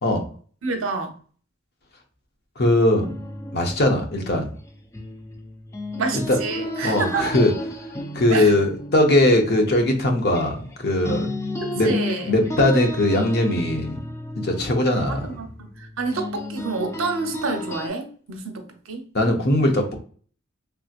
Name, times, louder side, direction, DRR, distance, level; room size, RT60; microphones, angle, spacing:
voice 1, 0.6-1.2 6.0-7.3 8.3-8.5 11.6-12.3 15.1-15.5 15.8-19.0, right 3 dB, 85° right, 0.7 m, -28 dB
voice 2, 2.6-3.1 3.5-4.5 6.1-6.4 6.8-7.5 8.1-11.3 11.8-11.9 12.3-14.0 14.4-15.3 19.1-20.0, left 1 dB, 50° left, 0.7 m, -20 dB
sound 1, 2.9-10.8 11.0-17.9, left 1 dB, 15° left, 0.4 m, -33 dB
3.4 x 2.8 x 2.4 m
head